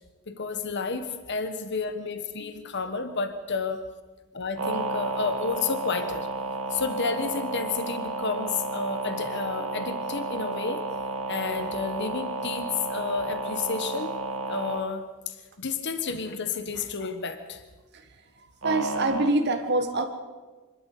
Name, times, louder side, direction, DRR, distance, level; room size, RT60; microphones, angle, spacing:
voice 1, 0.3-3.8 4.3-6.3 6.7-10.8 11.3-14.2 14.5-17.6, left 4 dB, 55° left, 9 dB, 1.3 m, -31 dB
sound 1, 4.6-14.9 18.6-19.3, right 3 dB, 65° right, 1.9 m, -32 dB
voice 2, 18.6-20.1, right 2 dB, 50° right, 5 dB, 1.7 m, -25 dB
25.0 x 12.5 x 8.4 m, 1.3 s
head